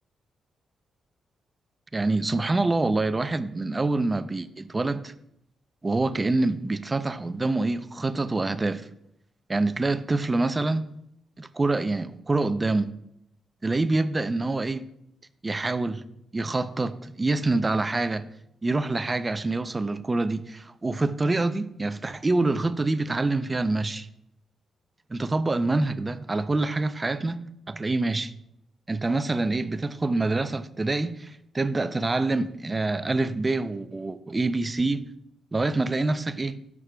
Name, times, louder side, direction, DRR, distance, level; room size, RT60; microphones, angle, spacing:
voice 1, 1.9-5.1 5.8-8.9 9.5-10.8 11.4-12.9 13.6-14.9 15.4-16.0 16.3-18.3 18.6-24.1 25.1-28.3 28.9-35.0 35.5-36.6, right 2 dB, 25° right, 0.4 m, -26 dB
11.0 x 6.0 x 2.2 m
cardioid pair, 75°, 0 cm